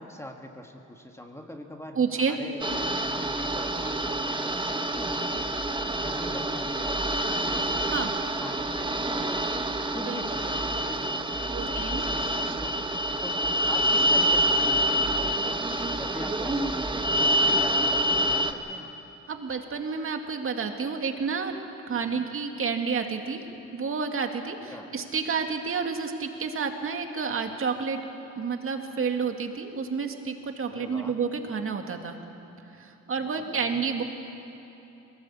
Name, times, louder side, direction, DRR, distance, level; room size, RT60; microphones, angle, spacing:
voice 1, 0.0-5.7 6.0-8.0 8.3-13.4 13.7-15.7 15.9-18.9 22.0-22.2 24.7-24.9 30.7-31.2 33.2-33.8, left 1 dB, 10° left, 3 dB, 1.7 m, -43 dB
voice 2, 2.0-2.4 7.9-8.1 10.1-10.2 11.5-12.0 19.3-21.5 21.9-23.4 23.7-28.0 28.4-32.2 32.8-34.0, right 5 dB, 45° right, 5 dB, 2.1 m, -30 dB
sound 1, 2.6-18.5, right 1 dB, 15° right, 1.2 m, -27 dB
21.0 x 18.5 x 8.4 m, 3.0 s
cardioid pair, 90°, 30 cm